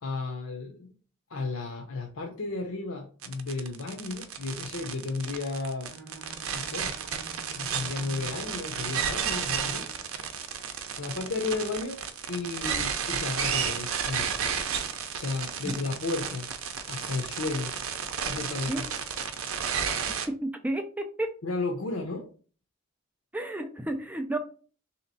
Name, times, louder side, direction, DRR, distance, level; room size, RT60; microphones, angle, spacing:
voice 1, 0.0-0.9 1.3-5.9 6.5-6.9 7.5-9.8 10.1-10.4 11.0-12.0 12.3-14.3 14.9-16.5 16.9-17.7 18.2-18.7 21.4-22.3, left 3 dB, 85° left, 1 dB, 0.6 m, -33 dB
sound 1, 3.2-20.3, right 7 dB, 90° right, 0.6 m, -32 dB
Bowed string instrument, 5.8-10.1, right 2 dB, 55° right, 0.9 m, -48 dB
voice 2, 20.3-21.3 23.3-24.4, right 1 dB, 10° right, 5 dB, 0.4 m, -31 dB
3.4 x 2.8 x 4.0 m, 0.40 s
head